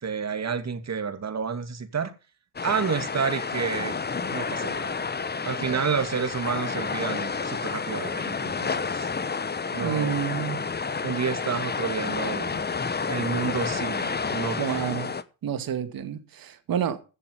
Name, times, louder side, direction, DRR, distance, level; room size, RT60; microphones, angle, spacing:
voice 1, 0.0-2.1 2.6-4.0 4.2-5.1 5.4-9.1 9.7-10.2 11.0-12.6 13.1-14.9, right 6 dB, 40° right, 2.4 m, -30 dB
sound 1, 2.6-15.2, left 5 dB, 25° left, 1.1 m, -30 dB
voice 2, 5.6-6.0 9.8-10.6 14.6-15.1 15.4-17.0, right 8 dB, 60° right, 2.2 m, -29 dB
15.5 x 7.0 x 5.5 m
supercardioid pair, 60°, 40 cm